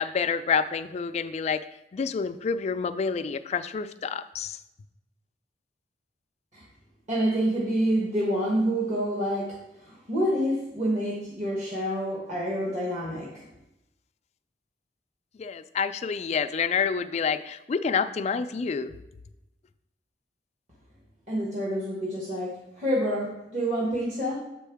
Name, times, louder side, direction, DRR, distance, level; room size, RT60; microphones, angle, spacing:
voice 1, 0.0-1.6 1.9-4.6 15.4-18.9, left 6 dB, 35° left, 10 dB, 0.3 m, -28 dB
voice 2, 7.1-13.5 21.3-24.4, equal, 40° right, -4 dB, 1.2 m, -28 dB
7.7 x 4.5 x 3.5 m, 0.91 s
head